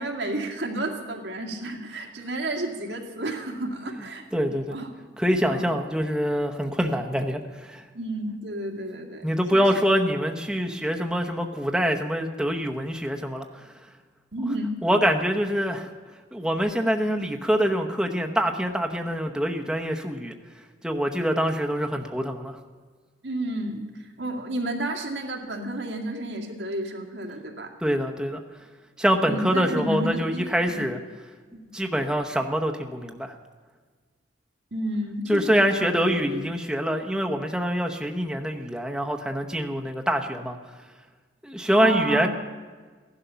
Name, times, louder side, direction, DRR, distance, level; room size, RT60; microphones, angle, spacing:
voice 1, 0.0-4.9 5.5-5.7 7.9-9.2 9.5-9.6 14.3-14.8 23.2-27.7 29.2-30.8 31.5-31.6 34.7-36.4 41.8-42.3, right 1 dB, 85° right, 1 dB, 2.2 m, -31 dB
voice 2, 4.3-4.7 5.2-7.8 9.2-13.7 14.8-15.9 16.3-20.3 20.8-22.6 27.8-28.4 29.0-31.0 31.7-33.4 35.3-40.6 41.4-42.3, equal, 5° right, 2 dB, 0.9 m, -25 dB
16.0 x 11.5 x 6.9 m, 1.5 s
head